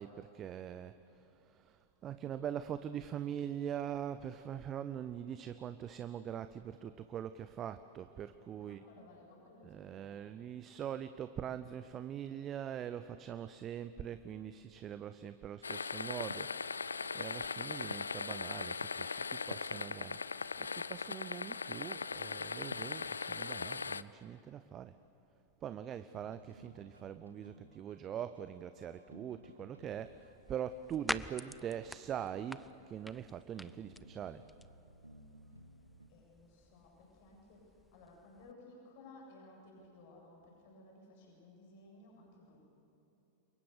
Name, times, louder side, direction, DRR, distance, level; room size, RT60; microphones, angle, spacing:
voice 1, 0.0-8.8 9.6-25.0 25.6-34.5, right 9 dB, 30° right, 12 dB, 0.7 m, -43 dB
voice 2, 8.6-10.5 36.1-42.6, left 2 dB, 50° left, 0 dB, 7.6 m, -58 dB
sound 1, 15.6-24.0, left 5 dB, 75° left, 0.5 m, -39 dB
sound 2, 26.1-36.1, right 1 dB, 85° right, 1.3 m, -60 dB
sound 3, 29.8-38.5, left 1 dB, ahead, 0.6 m, -48 dB
29.0 x 23.5 x 6.8 m, 2.9 s
figure-of-eight pair, 90°, 0 cm